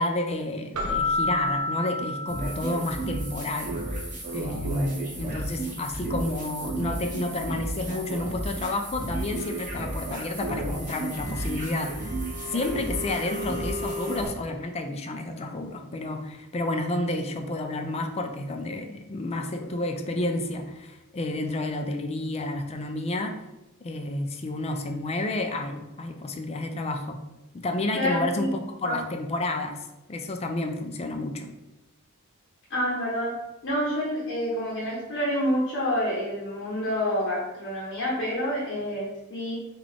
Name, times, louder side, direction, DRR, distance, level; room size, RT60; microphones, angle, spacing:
voice 1, 0.0-12.2 12.5-23.4 23.8-27.2 27.5-31.5, left 2 dB, 30° left, 5 dB, 0.3 m, -30 dB
Keyboard (musical), 0.7-3.1, left 2 dB, 75° right, 0.6 m, -29 dB
sound 1, 2.3-14.3, right 1 dB, 35° right, 1.1 m, -33 dB
voice 2, 27.9-28.5 28.8-29.0 32.7-33.4 33.6-39.6, equal, 55° left, -5 dB, 0.8 m, -28 dB
3.6 x 2.3 x 3.6 m, 0.96 s
head